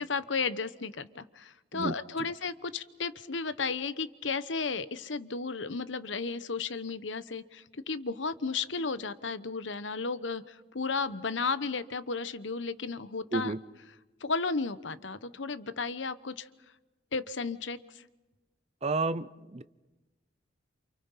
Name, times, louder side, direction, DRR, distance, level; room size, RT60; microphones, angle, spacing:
voice 1, 0.0-13.5 14.2-16.5 17.1-18.0, left 4 dB, 85° left, 14 dB, 1.1 m, -34 dB
voice 2, 18.8-19.6, right 3 dB, 35° right, 15 dB, 0.7 m, -31 dB
29.0 x 28.5 x 5.7 m, 1.1 s
head